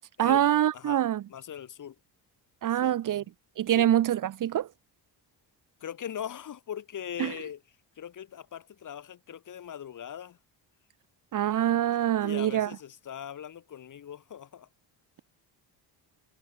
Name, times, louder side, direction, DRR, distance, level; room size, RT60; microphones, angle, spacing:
voice 1, 0.2-1.2 2.6-3.2 3.6-4.7 7.2-7.3 11.3-12.7, right 11 dB, 45° right, 1.1 m, -25 dB
voice 2, 1.3-1.9 2.8-3.2 3.7-3.9 5.8-7.6 8.0-10.4 12.2-14.7, left 9 dB, 45° left, 6.5 m, -40 dB
cardioid pair, 165°, 43 cm